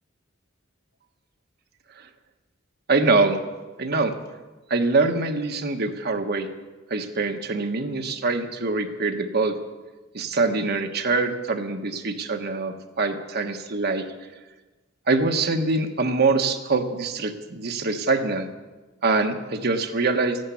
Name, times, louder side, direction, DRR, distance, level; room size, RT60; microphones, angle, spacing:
voice 1, 2.9-3.4 3.8-4.1 4.7-6.5 6.9-9.6 10.1-14.1 15.1-18.5 19.0-20.4, right 3 dB, 55° right, 5 dB, 1.3 m, -24 dB
14.0 x 12.0 x 8.4 m, 1.2 s
head